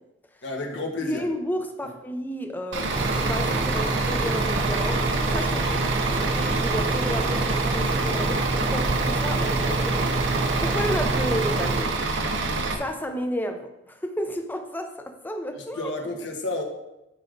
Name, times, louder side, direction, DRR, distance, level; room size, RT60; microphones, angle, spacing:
voice 1, 0.4-1.2 15.7-16.6, left 2 dB, 70° left, 1 dB, 1.4 m, -30 dB
voice 2, 1.0-5.8 6.1-12.0 12.8-15.9, equal, 10° left, 5 dB, 0.6 m, -32 dB
Bus / Idling, 2.7-12.7, right 3 dB, 75° right, 0.9 m, -27 dB
sound 1, 2.9-11.8, right 2 dB, 30° right, 0.5 m, -27 dB
9.9 x 4.9 x 3.9 m, 0.95 s
head